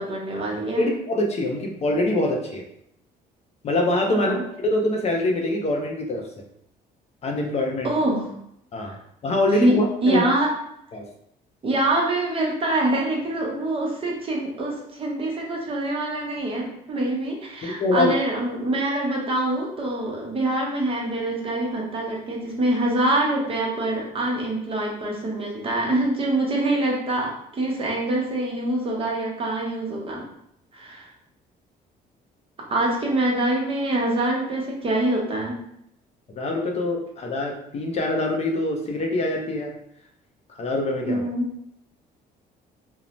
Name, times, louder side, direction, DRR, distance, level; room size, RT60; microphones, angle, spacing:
voice 1, 0.0-0.9 4.1-4.4 7.8-8.3 8.8-9.0 9.6-10.5 11.6-30.2 30.7-31.1 32.7-35.6 41.1-41.5, right 1 dB, 35° right, -1 dB, 0.7 m, -25 dB
voice 2, 0.8-2.6 3.6-6.3 7.2-7.9 8.7-8.9 9.2-10.2 10.9-11.0 17.6-18.1 36.4-39.7 40.6-41.3, left 1 dB, 40° left, 1 dB, 0.5 m, -24 dB
2.6 x 2.0 x 3.0 m, 0.75 s
cardioid pair, 110°, 17 cm